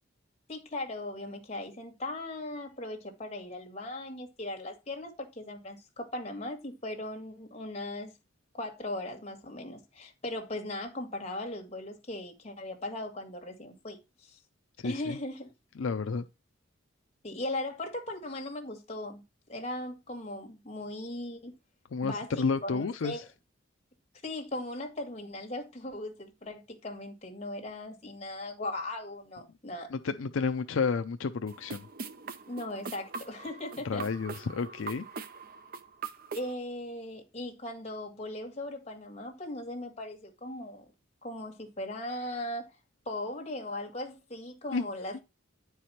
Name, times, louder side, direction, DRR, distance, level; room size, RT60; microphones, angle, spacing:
voice 1, 0.5-8.1 8.5-14.4 14.8-15.5 17.2-19.2 19.5-21.6 22.0-23.2 24.2-29.9 32.5-34.0 36.3-40.9 41.2-42.7 43.1-45.2, left 1 dB, 30° left, 1.9 m, -38 dB
voice 2, 14.8-15.2 15.8-16.3 21.9-23.2 29.9-31.9 33.8-35.0 44.7-44.8, left 4 dB, 75° left, 0.5 m, -31 dB
sound 1, 31.5-36.5, right 4 dB, 45° right, 0.7 m, -42 dB
9.9 x 4.8 x 4.3 m
head